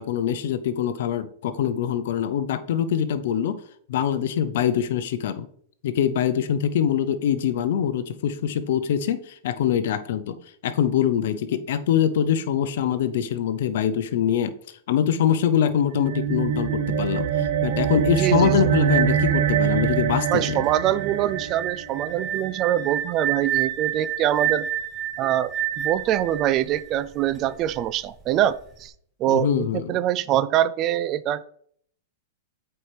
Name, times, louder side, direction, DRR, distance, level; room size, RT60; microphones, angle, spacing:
voice 1, 0.0-3.6 3.9-5.5 5.8-10.3 10.6-14.5 14.9-20.6 29.3-30.0, left 9 dB, 70° left, 13 dB, 0.6 m, -24 dB
sound 1, 15.8-22.5, right 8 dB, 65° right, 0.9 m, -24 dB
voice 2, 18.2-18.7 20.3-24.7 25.2-28.9 29.2-31.5, right 12 dB, 35° right, 17 dB, 0.3 m, -24 dB
sound 2, 20.6-27.6, right 10 dB, 20° right, 0.9 m, -29 dB
8.4 x 4.5 x 3.3 m, 0.63 s
hypercardioid pair, 130°, 0 cm